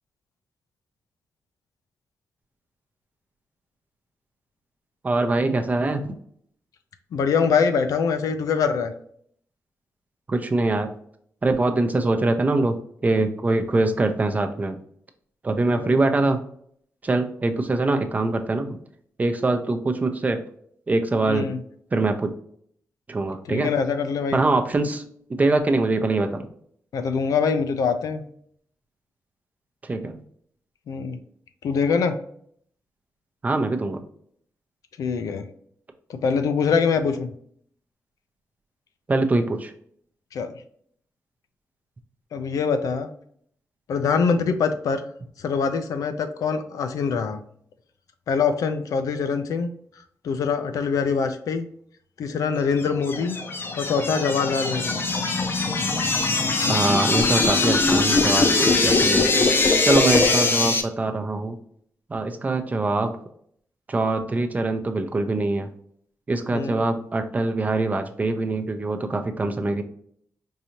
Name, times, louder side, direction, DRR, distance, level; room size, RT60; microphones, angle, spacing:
voice 1, 5.0-6.2 10.3-10.9 11.4-12.8 13.0-14.8 15.4-16.4 17.0-18.8 19.2-20.4 20.9-21.5 21.9-22.3 23.1-23.7 24.3-25.0 25.3-26.5 29.8-30.2 33.4-34.0 39.1-39.7 56.7-59.3 59.8-61.6 62.1-63.1 63.9-65.7 66.3-69.8, right 2 dB, 25° right, 6 dB, 0.5 m, -23 dB
voice 2, 7.1-8.9 15.6-15.9 21.3-21.6 23.5-24.4 26.9-28.2 30.9-31.2 31.6-32.1 35.0-35.5 36.1-37.3 40.3-40.5 42.3-43.1 43.9-45.0 45.4-47.4 48.3-49.7 50.2-51.7 52.2-53.4 53.8-54.9 66.5-66.9, left 5 dB, 85° left, 8 dB, 0.5 m, -24 dB
sound 1, 52.8-60.8, left 3 dB, 40° left, 0.6 m, -21 dB
4.7 x 2.7 x 2.8 m, 0.63 s
wide cardioid pair, 115°, 6 cm